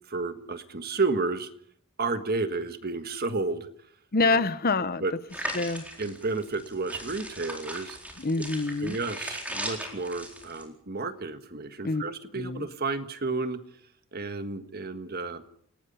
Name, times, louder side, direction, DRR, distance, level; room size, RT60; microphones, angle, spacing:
voice 1, 0.1-1.5 2.0-3.7 4.2-4.4 5.0-5.1 6.0-8.0 8.8-13.6 14.1-15.4, right 3 dB, 45° right, 1.5 m, -31 dB
voice 2, 4.1-5.0 5.5-5.8 8.2-9.0 11.8-12.0 12.3-12.7, left 3 dB, 45° left, 0.9 m, -26 dB
sound 1, 5.3-10.6, right 1 dB, 5° right, 4.3 m, -38 dB
29.5 x 18.5 x 5.5 m
head